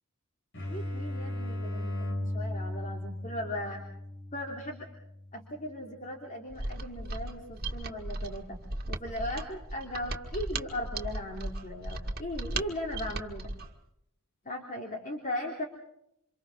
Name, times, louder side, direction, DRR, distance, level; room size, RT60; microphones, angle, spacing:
sound 1, 0.5-6.0, left 1 dB, 55° left, 5.2 m, -37 dB
voice 1, 0.7-2.1 2.3-3.9 4.3-4.9 5.3-8.6 8.9-13.5 14.4-15.7, left 1 dB, 35° left, 0 dB, 3.2 m, -38 dB
Mechanisms, 6.5-13.7, right 2 dB, 45° right, 1.9 m, -36 dB
29.0 x 26.5 x 3.7 m, 0.76 s
head